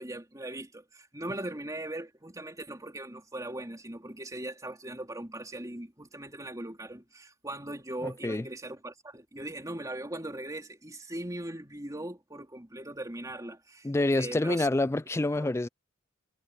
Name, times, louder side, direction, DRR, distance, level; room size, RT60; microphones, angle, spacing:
voice 1, 0.0-14.7 15.3-15.5, right 1 dB, 15° right, 3.4 m, -40 dB
voice 2, 8.0-8.4 13.8-15.7, left 2 dB, 15° left, 0.3 m, -27 dB
head